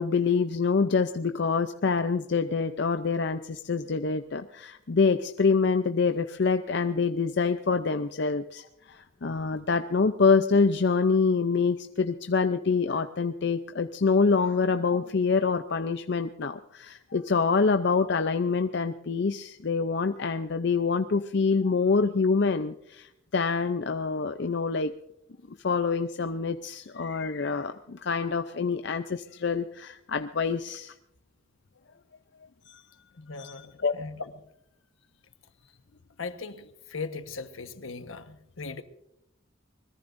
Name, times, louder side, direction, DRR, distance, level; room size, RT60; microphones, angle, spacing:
voice 1, 0.0-24.9 25.5-30.9 32.7-32.8 33.4-33.9, left 4 dB, 55° left, 8 dB, 0.6 m, -26 dB
voice 2, 33.1-34.3 36.2-38.8, left 4 dB, 75° left, 8 dB, 1.3 m, -38 dB
23.5 x 21.5 x 2.6 m, 0.79 s
head